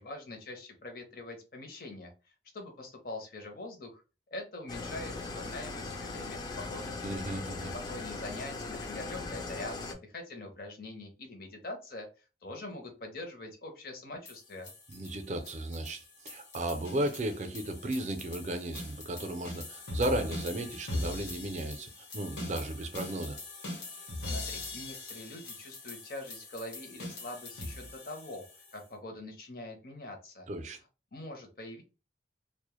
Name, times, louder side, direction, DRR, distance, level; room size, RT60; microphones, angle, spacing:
voice 1, 0.0-2.1 2.5-4.0 4.3-7.0 7.9-12.1 12.4-14.7 24.2-28.4 28.7-30.5 31.1-31.8, left 2 dB, 55° left, 0.6 m, -43 dB
Engine starting / Idling, 4.7-10.0, left 3 dB, 25° left, 0.3 m, -39 dB
voice 2, 7.0-7.7 14.9-23.4 30.5-30.8, right 1 dB, 40° right, 0.4 m, -35 dB
sound 1, 14.3-28.8, left 2 dB, 80° left, 1.0 m, -42 dB
2.1 x 2.0 x 2.9 m
head